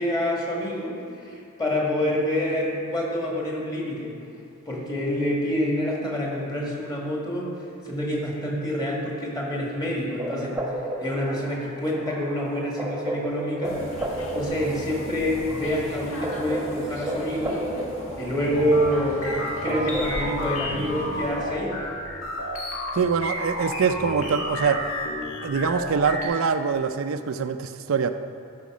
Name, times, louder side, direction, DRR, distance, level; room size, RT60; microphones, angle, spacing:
voice 1, 0.0-4.1 4.7-7.5 7.8-10.6 11.0-13.8 14.3-17.7 18.2-19.3 19.6-21.8, equal, 20° left, -3 dB, 1.9 m, -27 dB
sound 1, 10.2-20.5, right 1 dB, 10° right, 1.0 m, -33 dB
sound 2, 13.6-21.5, left 1 dB, 65° left, 1.5 m, -38 dB
sound 3, 18.5-26.3, left 1 dB, 85° left, 2.0 m, -31 dB
voice 2, 22.9-24.8 25.4-28.1, right 6 dB, 75° right, 9 dB, 0.4 m, -24 dB
13.0 x 5.1 x 6.1 m, 2.5 s
head